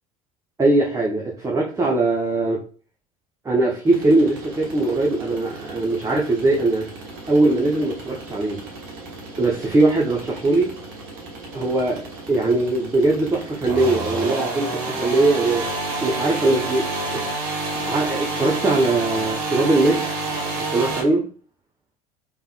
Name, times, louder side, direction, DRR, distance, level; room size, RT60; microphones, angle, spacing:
voice 1, 0.6-2.6 3.4-6.9 7.3-8.6 9.4-10.7 11.5-12.0 12.3-14.7 15.0-15.6 16.0-17.2 17.8-20.1 20.6-21.2, right 2 dB, 15° right, -3 dB, 0.9 m, -20 dB
sound 1, 3.9-21.0, right 3 dB, 55° right, 1.1 m, -30 dB
3.6 x 3.2 x 2.2 m, 0.38 s
figure-of-eight pair, 65°, 19 cm